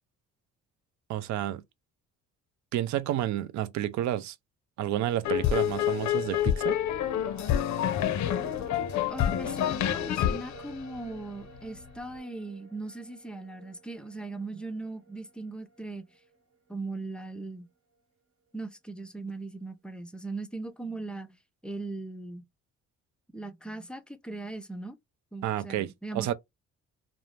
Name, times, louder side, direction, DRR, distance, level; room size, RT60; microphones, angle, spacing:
voice 1, 1.1-1.6 2.7-4.4 4.8-6.8 25.4-26.3, right 12 dB, 70° right, 0.5 m, -30 dB
sound 1, 5.2-11.6, left 11 dB, 70° left, 0.5 m, -28 dB
sound 2, 7.0-16.5 16.9-17.0, right 4 dB, 50° right, 0.9 m, -50 dB
voice 2, 9.1-16.1 16.7-17.7 18.5-22.4 23.3-25.0 25.3-26.3, right 2 dB, 5° left, 0.4 m, -39 dB
2.5 x 2.0 x 3.1 m
cardioid pair, 90°, 30 cm